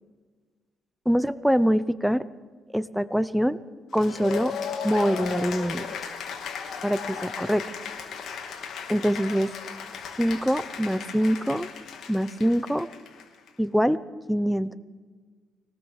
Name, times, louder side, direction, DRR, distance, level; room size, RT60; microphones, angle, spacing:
voice 1, 1.1-2.2 2.7-3.6 3.9-4.5 4.8-5.9 6.8-7.6 8.9-9.5 10.2-11.7 12.1-12.9 13.6-14.0 14.3-14.8, equal, ahead, 15 dB, 0.9 m, -24 dB
Cheering / Applause, 3.9-13.5, left 6 dB, 70° left, 3.4 m, -36 dB
25.0 x 18.5 x 7.4 m, 1.5 s
cardioid pair, 90°, 0 cm